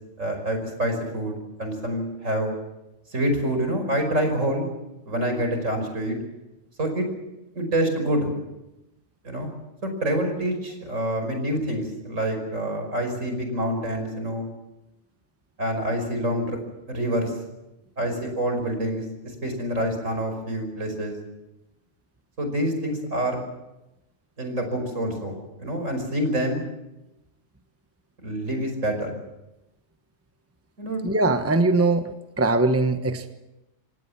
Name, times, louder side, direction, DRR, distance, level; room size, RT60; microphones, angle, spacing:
voice 1, 0.2-2.5 3.1-4.7 5.1-6.2 6.8-7.1 7.5-8.3 9.2-9.5 9.8-14.5 15.6-16.6 16.9-17.3 18.0-19.0 19.4-21.2 22.4-23.4 24.4-26.6 28.2-29.1 30.8-31.0, right 1 dB, 75° right, 5 dB, 5.8 m, -26 dB
voice 2, 31.0-33.3, right 2 dB, 10° right, 8 dB, 1.1 m, -21 dB
26.5 x 18.0 x 7.4 m, 0.95 s
omnidirectional pair, 1.3 m